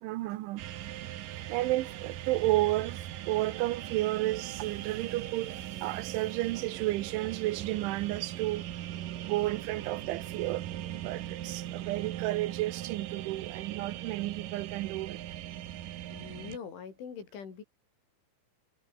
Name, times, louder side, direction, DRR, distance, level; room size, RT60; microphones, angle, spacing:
voice 1, 0.0-0.6 1.5-8.7 9.2-10.7 11.0-15.2, right 17 dB, 80° right, 3.4 m, -32 dB
sound 1, 0.6-16.6, right 13 dB, 65° right, 2.3 m, -40 dB
voice 2, 16.1-17.6, left 6 dB, 80° left, 7.5 m, -43 dB
omnidirectional pair, 5.4 m